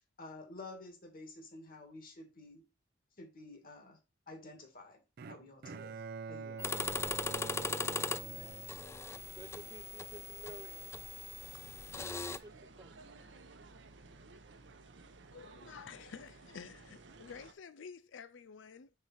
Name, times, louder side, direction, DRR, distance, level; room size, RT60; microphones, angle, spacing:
voice 1, 0.2-2.6 3.2-4.0 4.3-5.0 5.3-6.0 6.3-6.6, left 2 dB, 50° left, 2.1 m, -50 dB
Bowed string instrument, 5.2-9.4, right 5 dB, 55° right, 0.4 m, -46 dB
sound 1, 6.6-12.4, left 4 dB, 15° left, 0.3 m, -39 dB
voice 2, 7.3-8.6 8.9-11.0 12.0-13.1, right 2 dB, 20° right, 0.7 m, -54 dB
sound 2, 11.4-17.5, right 3 dB, 70° right, 0.8 m, -56 dB
voice 3, 15.3-18.9, left 6 dB, 90° left, 0.4 m, -50 dB
5.4 x 4.6 x 4.1 m
head